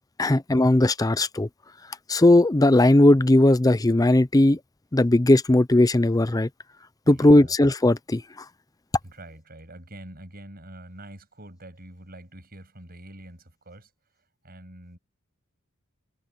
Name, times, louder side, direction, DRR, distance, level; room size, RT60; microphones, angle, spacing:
voice 1, 0.2-1.5 2.1-4.6 4.9-6.5 7.1-8.2, left 1 dB, 15° left, 0.5 m, -18 dB
voice 2, 7.0-7.5 9.0-13.9 14.4-15.0, right 1 dB, 45° right, 7.8 m, -45 dB
head